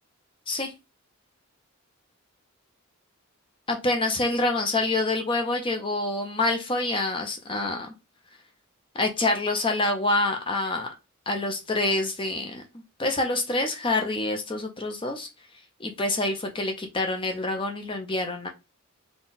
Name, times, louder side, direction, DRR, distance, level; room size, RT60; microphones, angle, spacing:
voice 1, 3.7-7.9 8.9-10.9 11.3-12.6 13.0-15.3 15.8-18.5, left 2 dB, 25° left, 4 dB, 0.6 m, -26 dB
4.1 x 2.3 x 3.9 m, 0.25 s
head